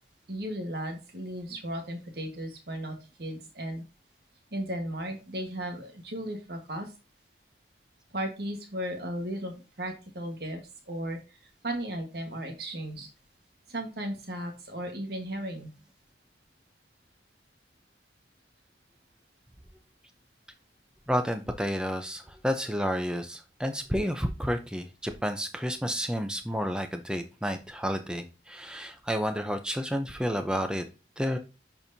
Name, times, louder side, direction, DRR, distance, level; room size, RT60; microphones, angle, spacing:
voice 1, 0.3-3.8 4.5-6.9 8.1-10.6 10.9-11.2 11.6-13.1 13.7-15.7, right 1 dB, 60° right, 4 dB, 1.5 m, -35 dB
voice 2, 21.1-30.8 31.2-31.4, equal, 5° right, 7 dB, 0.6 m, -30 dB
11.0 x 4.5 x 2.7 m, 0.31 s
head